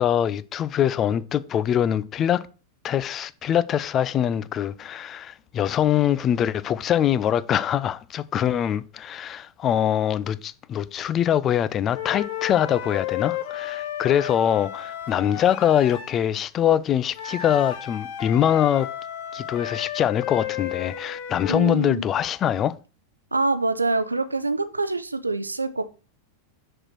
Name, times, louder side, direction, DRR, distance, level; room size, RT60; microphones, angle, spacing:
voice 1, 0.0-2.4 2.8-18.9 19.3-22.7, left 10 dB, 30° left, 0.4 m, -23 dB
sound 1, 11.9-16.2 17.1-21.8, left 11 dB, 50° left, 0.9 m, -33 dB
voice 2, 21.5-22.0 23.3-25.9, right 3 dB, 80° right, 0.5 m, -25 dB
6.6 x 4.4 x 5.9 m
figure-of-eight pair, 90°, 0 cm